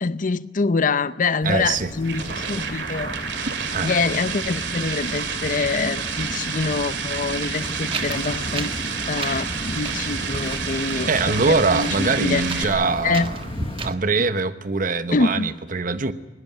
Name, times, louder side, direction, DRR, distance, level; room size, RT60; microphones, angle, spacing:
voice 1, 0.0-3.1 3.8-8.7 9.1-12.8 13.0-13.3 15.1-15.5, left 4 dB, 50° left, 0.6 m, -25 dB
sound 1, 1.4-13.9, left 1 dB, 30° left, 1.0 m, -34 dB
voice 2, 1.4-1.9 3.7-4.0 11.1-13.4 13.8-16.1, right 3 dB, 50° right, 1.0 m, -23 dB
sound 2, 1.7-12.6, right 6 dB, 75° right, 2.4 m, -30 dB
Wind, 7.5-13.9, right 3 dB, 30° right, 1.4 m, -35 dB
20.5 x 18.0 x 9.1 m
head